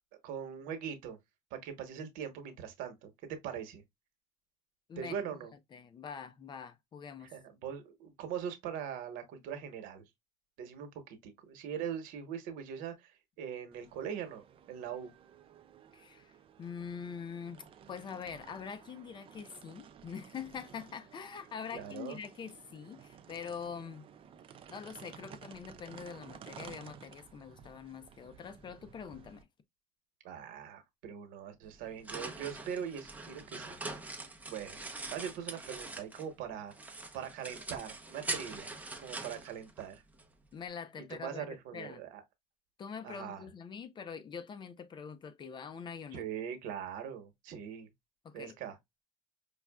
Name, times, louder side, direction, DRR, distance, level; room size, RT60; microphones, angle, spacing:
voice 1, 0.2-1.2 1.5-3.8 5.0-5.5 7.2-10.0 10.6-14.4 14.7-15.1 21.7-22.2 30.2-33.8 34.5-36.7 37.1-40.0 41.1-42.2 43.0-43.5 46.1-47.9 48.3-48.8, right 8 dB, 75° right, 1.1 m, -41 dB
voice 2, 4.9-5.4 5.7-7.4 15.9-24.1 24.7-29.5 40.5-42.0 42.8-46.3 48.2-48.5, left 6 dB, 35° left, 0.6 m, -44 dB
sound 1, 13.7-29.4, right 8 dB, 40° right, 0.5 m, -55 dB
sound 2, 31.6-36.4 36.7-40.2, right 2 dB, 10° right, 0.7 m, -43 dB
5.3 x 2.3 x 2.2 m
cardioid pair, 115°, 14 cm